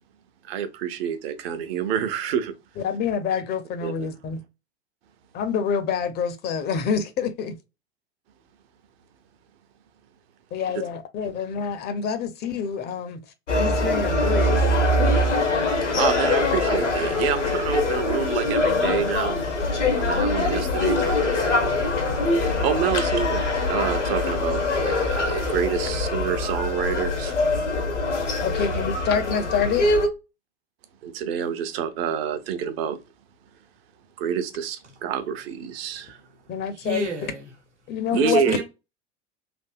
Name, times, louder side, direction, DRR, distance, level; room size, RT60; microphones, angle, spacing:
voice 1, 0.4-2.5 3.8-4.1 15.9-19.4 20.0-21.9 22.4-27.3 28.5-28.7 31.0-33.0 34.2-36.2 38.1-38.6, right 8 dB, 60° right, 0.7 m, -28 dB
voice 2, 2.8-4.4 5.3-7.6 10.5-13.2 13.6-14.6 28.4-29.9 36.5-37.1 37.9-38.4, left 7 dB, 30° left, 0.4 m, -27 dB
sound 1, 13.5-30.1, left 2 dB, 85° left, 0.9 m, -23 dB
voice 3, 36.7-37.5 38.1-38.6, right 2 dB, 85° right, 1.1 m, -31 dB
3.4 x 2.6 x 2.3 m
figure-of-eight pair, 80°, 35 cm